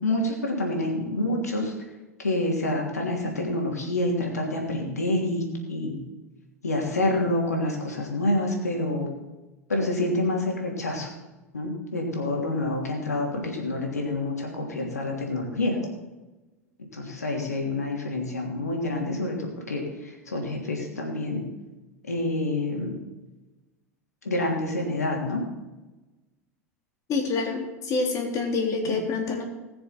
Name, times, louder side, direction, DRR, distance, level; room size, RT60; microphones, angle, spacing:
voice 1, 0.0-1.7 2.2-6.0 6.6-9.1 9.7-11.1 11.5-15.8 16.9-21.4 22.1-22.9 24.2-25.4 28.8-28.9, left 1 dB, 90° left, 0 dB, 3.1 m, -27 dB
voice 2, 27.1-29.4, left 4 dB, 40° left, 1 dB, 3.5 m, -27 dB
20.0 x 6.8 x 4.4 m, 1.1 s
hypercardioid pair, 85°, 8 cm